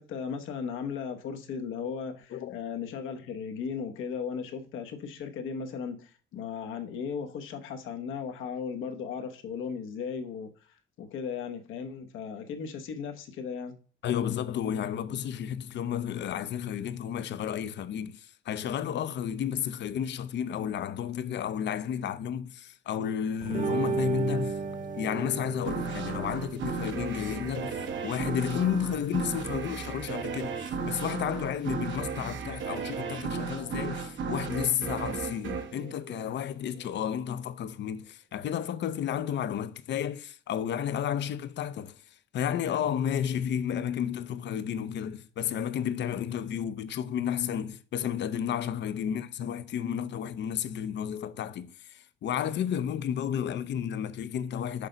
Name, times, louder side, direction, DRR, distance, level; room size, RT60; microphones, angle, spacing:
voice 1, 0.0-10.5 11.0-13.8 49.1-49.2, left 6 dB, 85° left, 1.1 m, -36 dB
voice 2, 14.0-24.6 24.9-42.0 42.3-54.9, left 9 dB, 65° left, 0.6 m, -32 dB
sound 1, 23.4-31.1, right 5 dB, 40° right, 1.1 m, -36 dB
sound 2, 25.7-36.8, right 5 dB, 70° right, 1.0 m, -35 dB
6.5 x 3.9 x 5.1 m
cardioid pair, 90°, 20 cm